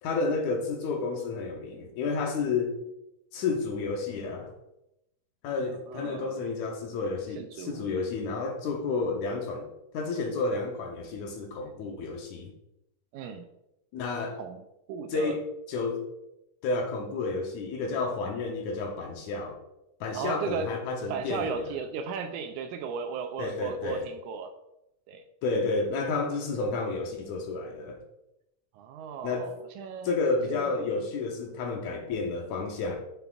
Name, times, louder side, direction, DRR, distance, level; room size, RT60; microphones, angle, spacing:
voice 1, 0.0-2.8 3.3-4.5 5.4-9.7 9.9-12.5 13.9-14.4 15.1-16.0 16.6-19.6 20.0-21.7 23.4-24.1 25.4-28.0 29.2-29.5 30.0-33.0, left 3 dB, 75° left, 2 dB, 1.9 m, -31 dB
voice 2, 5.9-6.4 7.4-7.9 13.1-13.4 14.4-14.6 14.9-15.4 20.1-20.8 21.1-24.5 25.1-25.3 28.7-30.2 30.5-30.6, right 5 dB, 80° right, 7 dB, 1.9 m, -35 dB
6.9 x 6.9 x 2.4 m, 0.86 s
omnidirectional pair, 3.7 m